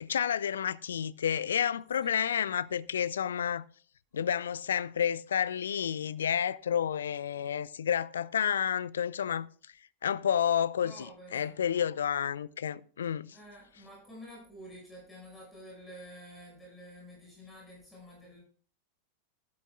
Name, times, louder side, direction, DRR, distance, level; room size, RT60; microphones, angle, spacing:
voice 1, 0.0-3.6 4.1-9.5 10.0-13.4, left 8 dB, 65° left, 0.4 m, -30 dB
voice 2, 10.8-11.5 13.3-18.4, equal, 10° left, 5.8 m, -49 dB
13.0 x 11.5 x 2.3 m
figure-of-eight pair, 90°, 0 cm